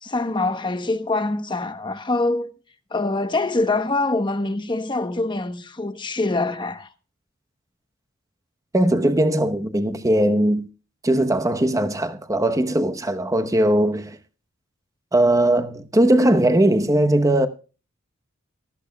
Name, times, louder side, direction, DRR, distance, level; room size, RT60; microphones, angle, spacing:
voice 1, 0.0-2.5 2.9-6.9, left 2 dB, 25° left, 1.0 m, -24 dB
voice 2, 8.7-10.6 11.0-14.2 15.1-17.5, right 1 dB, 15° right, 0.9 m, -19 dB
18.5 x 14.0 x 2.3 m
head